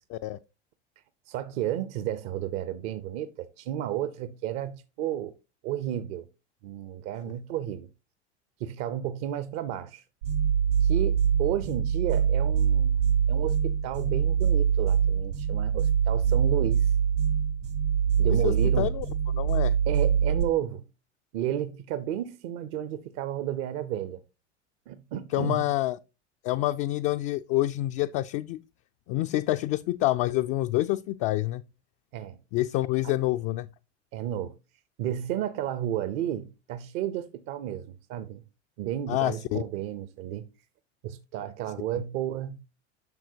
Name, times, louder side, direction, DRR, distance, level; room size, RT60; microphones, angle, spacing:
voice 1, 1.3-5.3 5.6-6.2 6.6-7.9 8.6-10.0 10.8-13.0 13.3-16.9 18.2-18.9 19.9-20.8 21.3-24.2 24.9-25.6 32.1-32.4 34.1-34.5 35.0-38.4 38.8-40.4 41.0-42.6, right 11 dB, 50° right, 0.7 m, -32 dB
sound 1, 10.2-20.4, right 7 dB, 90° right, 3.7 m, -24 dB
voice 2, 18.4-19.1 19.3-19.8 25.3-26.0 26.4-28.6 29.1-31.6 32.5-33.7 39.1-39.6, left 16 dB, 45° left, 0.4 m, -27 dB
10.5 x 6.0 x 2.8 m
hypercardioid pair, 85°, 35 cm